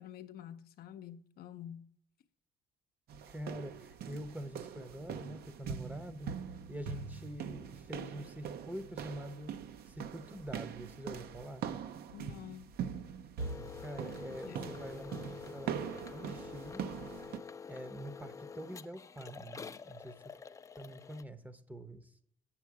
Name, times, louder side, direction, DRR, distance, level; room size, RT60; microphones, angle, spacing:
voice 1, 0.0-1.9 12.1-12.7 14.3-14.8, left 10 dB, 65° left, 0.6 m, -48 dB
sound 1, 3.1-17.4, right 7 dB, 65° right, 0.7 m, -42 dB
voice 2, 3.3-6.3 6.7-9.5 9.9-11.7 13.8-15.7 16.1-16.9 17.7-20.4 20.8-22.1, equal, 10° right, 0.7 m, -45 dB
sound 2, 13.4-21.2, left 6 dB, 20° left, 0.3 m, -48 dB
7.4 x 7.3 x 4.7 m
cardioid pair, 110°, 17 cm